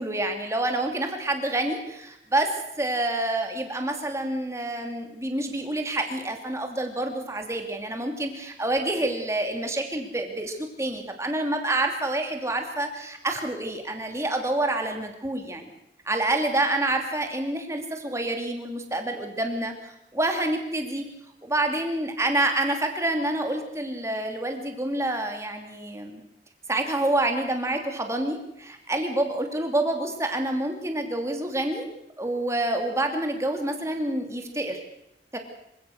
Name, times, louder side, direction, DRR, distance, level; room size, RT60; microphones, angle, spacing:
voice 1, 0.0-2.5 2.8-15.7 16.1-21.1 21.4-26.2 26.7-31.9 32.2-34.8 35.3-35.4, right 1 dB, 15° right, 4 dB, 2.8 m, -27 dB
26.0 x 16.5 x 6.5 m, 0.80 s
head